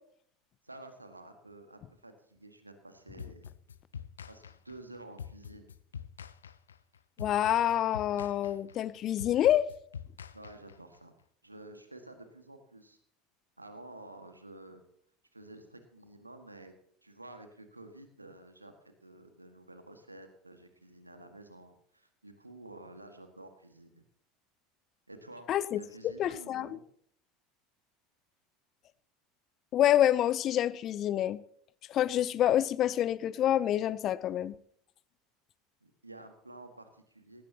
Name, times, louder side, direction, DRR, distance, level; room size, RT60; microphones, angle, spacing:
voice 1, 0.6-3.5 4.3-5.7 10.3-11.1 11.4-13.0 13.6-14.8 15.3-16.7 17.0-24.0 25.1-25.5 25.8-26.8 35.8-37.5, right 2 dB, 90° right, 7 dB, 1.8 m, -51 dB
sound 1, 3.2-11.0, left 7 dB, 75° left, 0.6 m, -45 dB
voice 2, 7.2-9.7 25.5-25.8 26.2-26.7 29.7-31.4 31.9-34.5, left 12 dB, 40° left, 19 dB, 0.7 m, -27 dB
18.5 x 16.5 x 2.9 m, 0.64 s
figure-of-eight pair, 75°, 0 cm